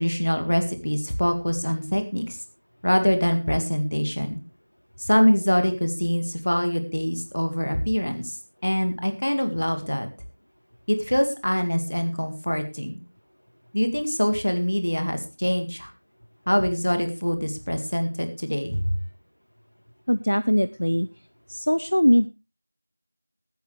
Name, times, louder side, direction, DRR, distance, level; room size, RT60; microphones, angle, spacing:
voice 1, 0.0-2.4 2.8-4.4 5.0-8.4 8.6-10.1 10.9-13.0 13.7-15.9 16.5-18.9, equal, 40° left, 7 dB, 1.9 m, -24 dB
voice 2, 20.1-21.1 21.5-22.3, equal, 65° left, 12 dB, 0.7 m, -21 dB
20.5 x 9.3 x 3.3 m, 0.29 s
figure-of-eight pair, 180°, 0 cm